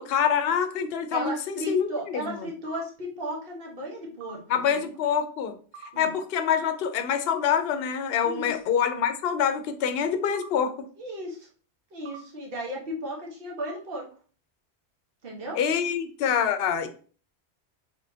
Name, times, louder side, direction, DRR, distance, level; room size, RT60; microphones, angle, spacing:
voice 1, 0.0-2.2 4.5-5.5 6.0-10.7 15.5-16.9, left 8 dB, 70° left, 8 dB, 0.8 m, -26 dB
voice 2, 1.1-4.9 5.9-6.1 8.2-8.6 11.0-11.5 11.9-14.1 15.2-15.6, equal, 60° right, -1 dB, 1.3 m, -35 dB
sound 1, 1.1-1.3 2.7-2.8 4.2-4.4 5.7-5.9 7.3-7.4 8.8-8.9 10.3-10.5 12.1-12.2 13.6-13.7, right 5 dB, 85° right, 0.9 m, -43 dB
4.1 x 3.5 x 2.7 m, 0.41 s
omnidirectional pair, 1.1 m